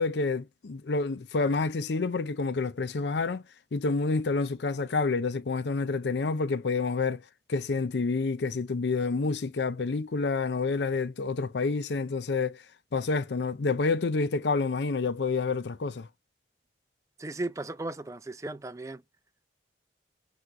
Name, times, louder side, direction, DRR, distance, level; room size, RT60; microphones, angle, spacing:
voice 1, 0.0-3.4 3.7-7.2 7.5-12.6 12.9-16.1, left 4 dB, 75° left, 0.5 m, -28 dB
voice 2, 17.2-19.0, right 2 dB, 15° right, 0.4 m, -36 dB
8.0 x 3.1 x 6.4 m
head